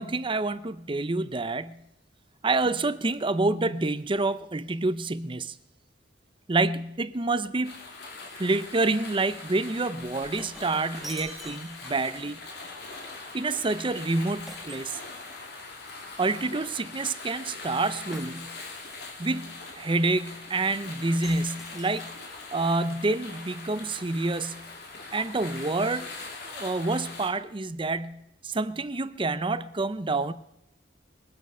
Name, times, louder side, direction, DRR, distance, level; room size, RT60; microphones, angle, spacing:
voice 1, 0.0-1.8 2.4-5.5 6.5-7.7 8.4-12.4 13.3-15.0 16.2-18.5 19.2-22.1 22.5-24.6 25.1-26.1 26.4-30.3, right 3 dB, 30° right, 0.6 m, -28 dB
sound 1, 7.6-27.3, left 3 dB, 65° left, 2.6 m, -42 dB
Shatter, 10.1-12.2 14.5-15.8 18.1-18.9 21.2-22.3, right 1 dB, ahead, 1.4 m, -46 dB
22.5 x 9.4 x 5.6 m
head